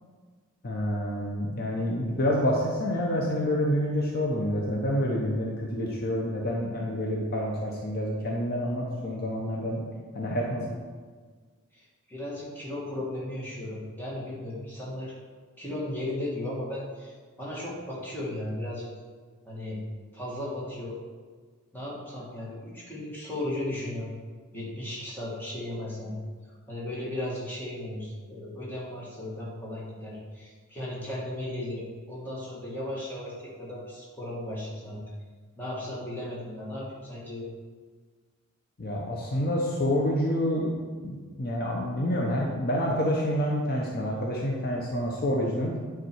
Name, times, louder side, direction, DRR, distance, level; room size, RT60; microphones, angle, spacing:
voice 1, 0.6-9.8 10.1-10.6 38.8-45.8, equal, 45° left, -2 dB, 0.8 m, -28 dB
voice 2, 11.7-15.1 15.6-17.1 17.4-18.9 19.4-19.8 20.1-21.0 21.7-24.1 24.5-26.1 26.7-35.0 35.6-37.4, left 1 dB, 10° left, -6 dB, 1.7 m, -36 dB
9.1 x 3.7 x 4.5 m, 1.5 s
head